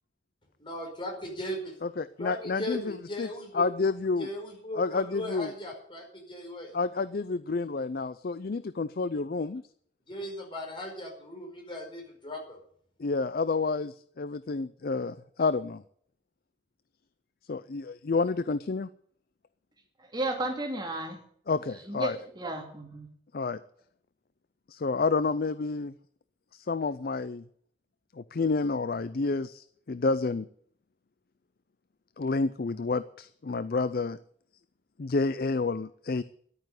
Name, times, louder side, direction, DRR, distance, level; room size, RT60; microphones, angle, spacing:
voice 1, 0.6-1.8 2.2-3.7 4.2-6.7 10.1-12.6, left 1 dB, 30° left, 1 dB, 5.0 m, -38 dB
voice 2, 1.8-3.3 3.5-4.3 4.7-5.5 6.7-9.6 13.0-15.8 17.5-18.9 21.5-22.2 23.3-23.6 24.7-25.9 26.5-27.4 28.2-30.5 32.2-34.2 35.0-36.2, left 4 dB, 55° left, 15 dB, 0.5 m, -29 dB
voice 3, 20.1-21.2 21.9-23.1, right 2 dB, 25° right, 3 dB, 2.5 m, -33 dB
12.0 x 9.0 x 9.6 m, 0.62 s
head